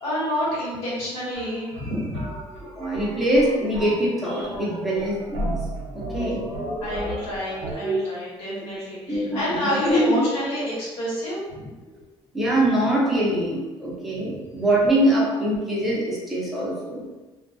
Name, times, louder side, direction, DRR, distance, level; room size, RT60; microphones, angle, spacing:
voice 1, 0.0-2.3 6.8-11.6, equal, 85° left, -8 dB, 1.1 m, -28 dB
sound 1, 1.3-7.7, right 1 dB, 65° right, 0.7 m, -34 dB
voice 2, 2.8-5.6 5.9-6.5 7.8-8.0 9.1-10.2 12.3-17.0, right 1 dB, ahead, -6 dB, 0.6 m, -23 dB
2.2 x 2.2 x 2.5 m, 1.2 s
cardioid pair, 150°, 10 cm